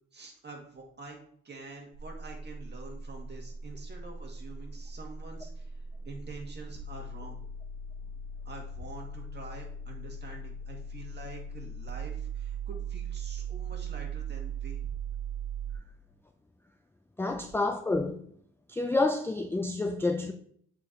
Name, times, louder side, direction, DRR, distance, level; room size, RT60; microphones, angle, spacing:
voice 1, 0.1-1.2 1.4-5.7 6.1-7.5 8.5-14.9, right 3 dB, 35° right, 1.9 m, -46 dB
sound 1, 1.9-15.8, right 4 dB, 60° right, 0.9 m, -39 dB
voice 2, 17.2-18.2 18.7-20.3, left 2 dB, 10° left, 0.3 m, -28 dB
8.2 x 4.4 x 2.8 m
cardioid pair, 90°, 30 cm